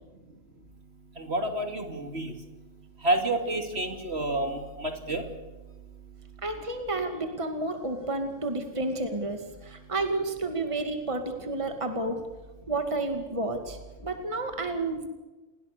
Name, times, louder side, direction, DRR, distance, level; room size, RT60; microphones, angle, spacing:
voice 1, 1.2-2.3 3.0-5.2, right 1 dB, 45° right, 6 dB, 3.1 m, -29 dB
voice 2, 6.4-12.2 12.7-15.1, right 2 dB, 20° right, 6 dB, 2.4 m, -31 dB
29.5 x 21.0 x 6.8 m, 1.2 s
omnidirectional pair, 1.5 m